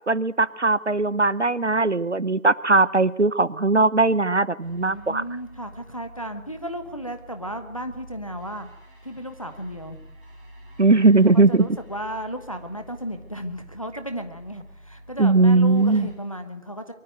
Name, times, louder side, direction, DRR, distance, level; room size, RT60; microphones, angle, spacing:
voice 1, 0.1-5.2 10.8-11.7 15.2-16.1, right 3 dB, 55° right, 19 dB, 0.9 m, -19 dB
sound 1, 4.6-16.1, equal, 5° right, 3.6 m, -47 dB
voice 2, 4.9-8.7 9.0-10.0 11.3-16.9, equal, 25° left, 7 dB, 1.3 m, -34 dB
23.5 x 13.0 x 9.2 m, 0.86 s
figure-of-eight pair, 170°, 41 cm